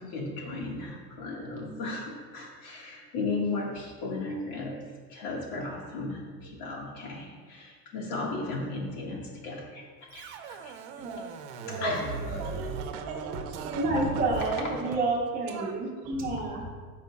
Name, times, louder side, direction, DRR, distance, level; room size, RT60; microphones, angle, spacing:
voice 1, 0.0-4.8 5.1-10.8 11.7-12.4, left 3 dB, 60° left, -2 dB, 1.7 m, -35 dB
Scratching (performance technique), 10.1-15.0, right 5 dB, 90° right, 0.8 m, -38 dB
voice 2, 11.6-11.9 12.2-12.6 13.8-16.7, right 2 dB, 25° right, -1 dB, 1.0 m, -29 dB
voice 3, 12.4-14.1 15.4-15.8 16.0-16.3 16.6-16.7, right 4 dB, 60° right, 4 dB, 0.9 m, -40 dB
13.5 x 5.1 x 2.3 m, 1.5 s
cardioid pair, 180°, 33 cm